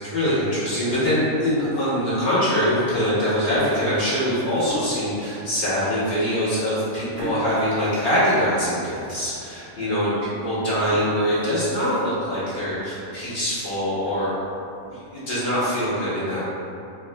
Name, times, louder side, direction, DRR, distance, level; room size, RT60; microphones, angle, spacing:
voice 1, 0.0-10.2 10.4-14.4 14.8-16.4, equal, 35° left, -13 dB, 1.4 m, -23 dB
sound 1, 0.8-1.2 1.8-1.9 2.8-3.0 3.3-5.2 5.8-5.9 6.2-6.4 7.2-8.9 9.3-9.4 9.9-10.0 10.6-12.3 12.7-12.8 13.2-13.3 13.6-13.7 14.0-14.1 15.1-15.7, right 1 dB, 45° right, 1.4 m, -39 dB
4.5 x 2.3 x 2.3 m, 2.7 s
omnidirectional pair, 1.6 m